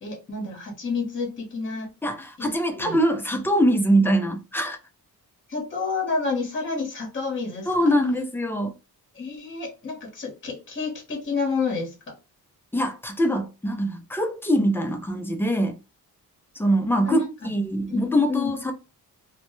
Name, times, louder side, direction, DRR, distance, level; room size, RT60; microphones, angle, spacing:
voice 1, 0.0-1.9 2.4-3.0 4.0-4.1 5.5-7.9 9.1-11.9 17.1-17.5 17.9-18.5, left 4 dB, 30° left, 0.9 m, -30 dB
voice 2, 2.0-4.8 7.7-8.7 12.7-15.8 16.6-18.7, equal, 5° left, 0.3 m, -23 dB
2.1 x 2.1 x 2.9 m
wide cardioid pair, 125°, 38 cm